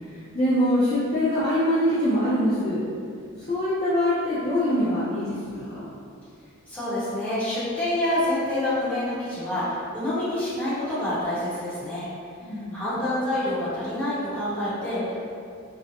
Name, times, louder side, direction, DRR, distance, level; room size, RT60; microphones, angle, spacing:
voice 1, 0.0-2.8 3.4-5.8 12.4-12.9, equal, 30° left, -11 dB, 0.4 m, -24 dB
voice 2, 6.7-12.1 12.7-15.3, left 1 dB, 5° left, -14 dB, 0.9 m, -27 dB
2.6 x 2.1 x 2.6 m, 2.4 s
head